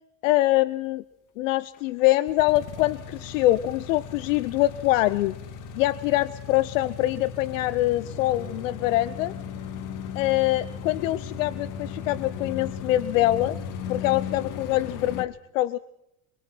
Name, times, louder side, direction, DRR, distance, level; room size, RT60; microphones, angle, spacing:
voice 1, 0.2-1.0 1.4-5.3 5.7-9.4 10.1-13.6 13.9-15.8, left 16 dB, 85° left, 17 dB, 0.8 m, -24 dB
sound 1, 1.7-15.2, left 7 dB, 50° left, 1.9 m, -37 dB
26.5 x 23.0 x 4.6 m, 0.81 s
supercardioid pair, 105°, 38 cm